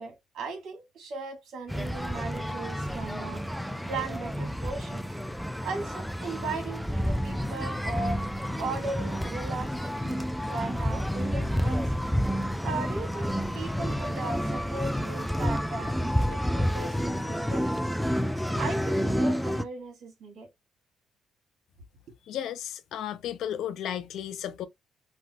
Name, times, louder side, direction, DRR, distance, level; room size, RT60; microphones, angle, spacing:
voice 1, 0.0-3.4 3.9-5.0 5.6-8.2 8.6-11.9 12.6-17.8 18.6-20.5, right 3 dB, 70° right, 1.3 m, -37 dB
sound 1, 1.7-19.6, equal, ahead, 0.3 m, -30 dB
sound 2, 5.7-17.7, left 1 dB, 30° left, 1.0 m, -52 dB
voice 2, 22.3-24.7, left 10 dB, 80° left, 0.4 m, -34 dB
3.2 x 2.3 x 2.6 m
cardioid pair, 90°, 0 cm